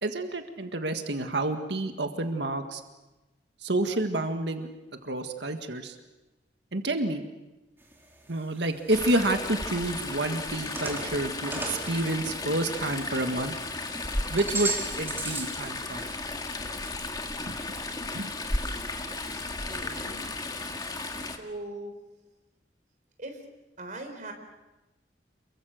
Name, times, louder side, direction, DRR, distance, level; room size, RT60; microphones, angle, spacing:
voice 1, 0.0-2.8 3.6-4.7 5.0-6.0 6.7-7.2 8.3-13.5 14.3-16.1 17.5-17.6 18.1-18.3, right 2 dB, 75° right, 6 dB, 1.8 m, -29 dB
sound 1, 7.8-8.4 8.9-9.0 9.7-13.2 13.5-15.6 15.9-16.1, right 3 dB, 15° right, 3.9 m, -36 dB
Chatter / Stream, 8.9-21.4, left 2 dB, 25° left, 1.9 m, -34 dB
voice 2, 19.7-20.2 21.4-21.9 23.2-23.4 23.8-24.3, right 2 dB, 45° right, 4 dB, 4.1 m, -40 dB
28.5 x 23.0 x 6.6 m, 1.1 s
head